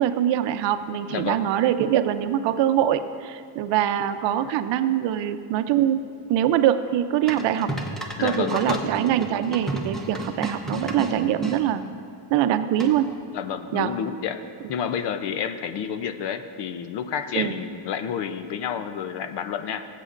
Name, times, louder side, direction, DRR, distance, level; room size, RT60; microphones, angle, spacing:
voice 1, 0.0-6.0 6.3-7.7 8.2-11.8 12.3-13.1 13.7-13.9 17.4-17.5, right 11 dB, 65° right, 10 dB, 0.6 m, -23 dB
voice 2, 1.1-1.5 8.2-8.9 13.3-19.9, left 8 dB, 60° left, 10 dB, 0.7 m, -30 dB
sound 1, 7.3-11.6 12.8-13.2, right 1 dB, ahead, 0.9 m, -32 dB
19.5 x 8.4 x 2.5 m, 2.3 s
cardioid pair, 145°, 47 cm